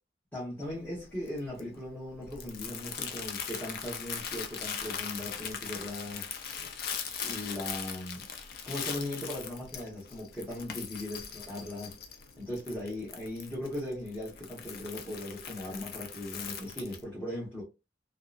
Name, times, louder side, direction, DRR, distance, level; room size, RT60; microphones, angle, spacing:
voice 1, 0.3-6.3 7.2-8.3 8.6-12.0 12.4-17.6, left 1 dB, 10° left, 0.9 m, -38 dB
Crumpling crinkling, 0.6-17.0, left 7 dB, 50° left, 0.4 m, -40 dB
2.7 x 2.0 x 2.3 m
head